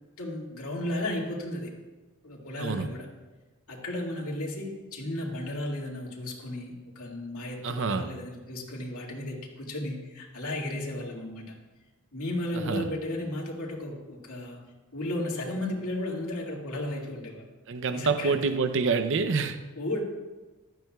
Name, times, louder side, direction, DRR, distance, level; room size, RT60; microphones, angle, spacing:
voice 1, 0.2-1.7 2.2-3.1 3.7-11.5 12.1-14.6 14.9-17.4 17.9-18.6 19.8-20.0, left 1 dB, 90° left, -2 dB, 2.2 m, -34 dB
voice 2, 2.6-2.9 7.6-8.1 12.5-12.9 17.7-19.6, right 4 dB, 60° right, 10 dB, 0.7 m, -27 dB
15.5 x 12.0 x 2.4 m, 1.2 s
head